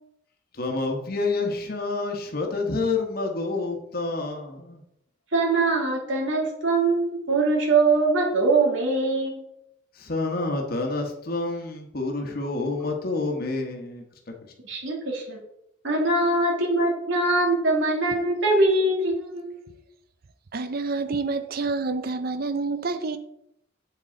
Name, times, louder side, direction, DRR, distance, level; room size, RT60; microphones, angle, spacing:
voice 1, 0.5-4.8 9.9-14.0 14.4-14.5, left 3 dB, 50° left, 1.2 m, -28 dB
voice 2, 5.3-9.4 14.6-15.4 15.8-19.6, right 2 dB, 75° right, 2.5 m, -22 dB
voice 3, 20.5-23.2, right 3 dB, 50° right, 0.5 m, -28 dB
7.7 x 7.6 x 3.8 m
head